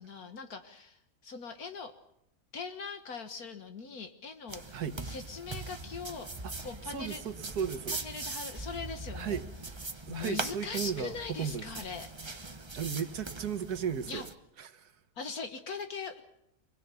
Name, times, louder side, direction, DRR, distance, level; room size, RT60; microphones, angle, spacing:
voice 1, 0.0-1.9 2.5-7.2 8.0-9.4 10.1-12.5 14.1-14.3 15.2-16.2, left 5 dB, 70° left, 7 dB, 1.9 m, -41 dB
sound 1, 4.5-14.3, right 3 dB, 20° right, 0.9 m, -41 dB
voice 2, 6.9-8.0 9.1-9.4 10.1-11.7 12.5-14.2 14.6-14.9, right 7 dB, 80° right, 10 dB, 1.8 m, -35 dB
26.5 x 20.5 x 6.9 m, 0.78 s
omnidirectional pair, 1.6 m